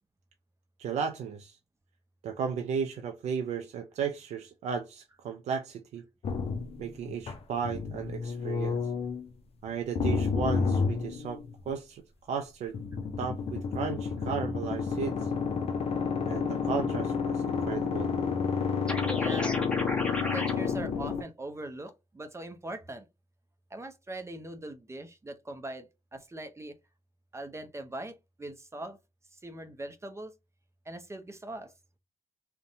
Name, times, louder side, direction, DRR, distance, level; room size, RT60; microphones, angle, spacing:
voice 1, 0.8-1.6 2.2-6.0 6.8-8.8 9.6-12.0 12.3-12.7 13.2-15.3 16.2-18.1, right 6 dB, 75° right, 0.4 m, -35 dB
sound 1, 6.2-9.3 9.9-11.7 12.7-21.2, left 5 dB, 55° left, 0.5 m, -30 dB
sound 2, 18.9-20.5, left 1 dB, 10° left, 1.1 m, -34 dB
voice 2, 19.1-19.6 20.3-23.1 23.7-26.7 27.3-29.0 29.3-30.3 30.9-31.7, right 1 dB, 25° right, 0.5 m, -41 dB
2.6 x 2.1 x 2.6 m
supercardioid pair, 50°, 12 cm